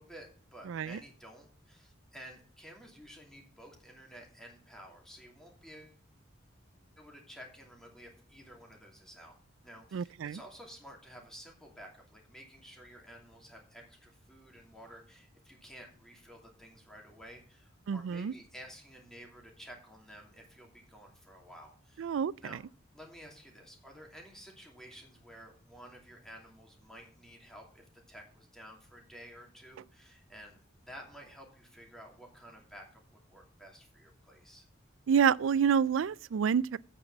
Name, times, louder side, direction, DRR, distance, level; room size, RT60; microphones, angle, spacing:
voice 1, 0.0-6.0 7.0-9.3 9.6-22.1 22.4-22.6 22.9-34.7, equal, 5° left, 2.6 m, -52 dB
voice 2, 0.7-1.0 9.9-10.4 17.9-18.3 22.0-22.3 35.1-36.8, right 7 dB, 75° right, 0.3 m, -28 dB
8.6 x 5.9 x 7.2 m
head